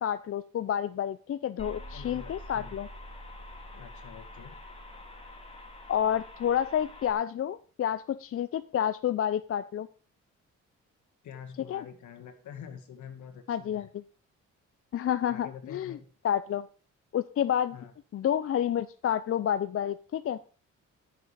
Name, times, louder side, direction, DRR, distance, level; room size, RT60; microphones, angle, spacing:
voice 1, 0.0-2.9 5.9-9.9 11.7-11.8 13.5-14.0 14.9-16.0 16.2-16.6 17.1-17.8 18.1-20.4, left 10 dB, 50° left, 13 dB, 0.6 m, -29 dB
sound 1, 1.6-7.1, left 1 dB, 20° left, 2.9 m, -45 dB
voice 2, 1.9-2.8 3.7-4.6 11.2-13.9 15.3-16.1 17.7-17.9, left 8 dB, 75° left, 8 dB, 2.1 m, -46 dB
13.0 x 6.8 x 5.1 m, 0.38 s
cardioid pair, 90°, 30 cm